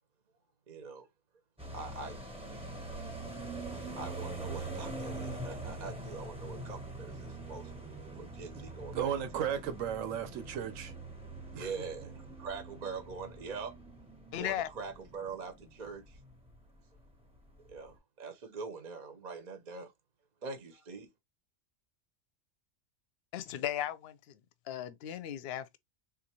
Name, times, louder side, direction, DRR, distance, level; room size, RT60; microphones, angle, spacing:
voice 1, 0.7-1.1 1.7-2.2 3.0-3.1 3.7-7.7 8.2-9.5 11.5-12.1 12.4-13.8 14.4-16.2 17.7-19.9 20.4-21.1, right 4 dB, 45° right, 0.7 m, -43 dB
sound 1, 1.6-16.7 17.0-17.1 17.3-17.9, right 2 dB, 5° right, 0.7 m, -44 dB
voice 2, 8.8-10.9 11.5-11.7, right 9 dB, 85° right, 1.1 m, -35 dB
voice 3, 14.3-14.7 23.3-24.4 24.7-25.8, left 11 dB, 65° left, 0.7 m, -36 dB
3.6 x 2.5 x 2.8 m
omnidirectional pair, 1.3 m